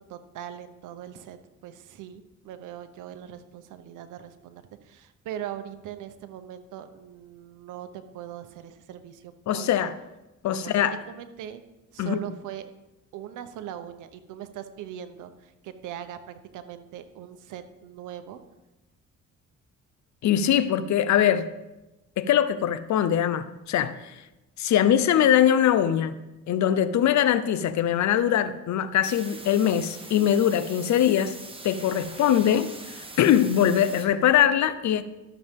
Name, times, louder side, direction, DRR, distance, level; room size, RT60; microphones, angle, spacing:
voice 1, 0.1-9.9 10.5-11.6 11.9-12.7 13.1-18.4, right 10 dB, 90° right, 0.8 m, -40 dB
voice 2, 9.5-9.9 10.4-11.0 12.0-12.2 20.2-21.5 22.2-24.1 24.6-26.1 26.5-31.3 31.6-35.0, left 10 dB, 70° left, 0.7 m, -22 dB
sound 1, 29.0-34.1, right 2 dB, 20° right, 1.3 m, -43 dB
13.0 x 7.0 x 3.6 m
cardioid pair, 90°, 30 cm